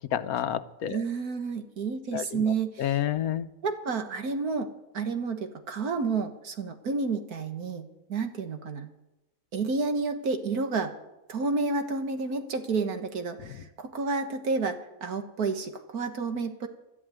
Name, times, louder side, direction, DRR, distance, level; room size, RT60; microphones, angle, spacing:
voice 1, 0.1-1.0 2.1-2.4 2.8-3.5 13.4-13.6, left 10 dB, 75° left, 13 dB, 1.2 m, -29 dB
voice 2, 0.9-3.0 3.6-4.7 4.9-8.9 9.5-10.9 11.3-16.7, right 4 dB, 80° right, 7 dB, 2.0 m, -30 dB
12.5 x 11.0 x 9.3 m, 0.94 s
omnidirectional pair, 1.6 m